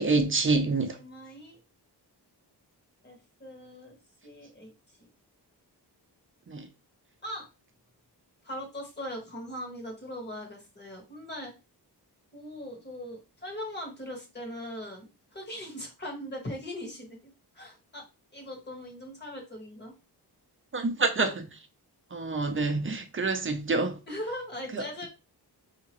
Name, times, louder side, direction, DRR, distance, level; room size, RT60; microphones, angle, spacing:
voice 1, 0.0-1.0 6.5-6.7 20.7-21.6 22.1-24.0 24.7-24.8, right 3 dB, 30° right, 0.6 m, -27 dB
voice 2, 0.9-1.6 3.0-4.0 4.2-4.7 7.2-7.5 8.4-11.5 12.3-18.0 18.3-19.9 24.1-25.1, left 1 dB, 25° left, 1.4 m, -40 dB
4.9 x 2.9 x 3.0 m
wide cardioid pair, 160°, 40 cm